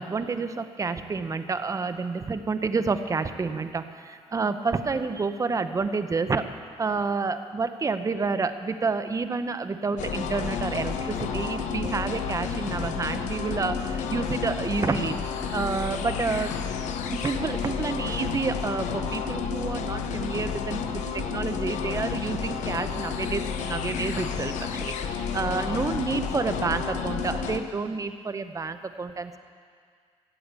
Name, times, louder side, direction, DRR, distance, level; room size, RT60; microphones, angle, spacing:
voice 1, 0.0-6.4 6.8-15.2 15.5-16.5 17.1-21.0 21.3-24.5 24.8-29.4, right 4 dB, 30° right, 10 dB, 0.8 m, -29 dB
sound 1, 10.0-27.6, left 6 dB, 90° left, 0.9 m, -31 dB
15.5 x 8.5 x 8.2 m, 2.1 s
cardioid pair, 105°, 12 cm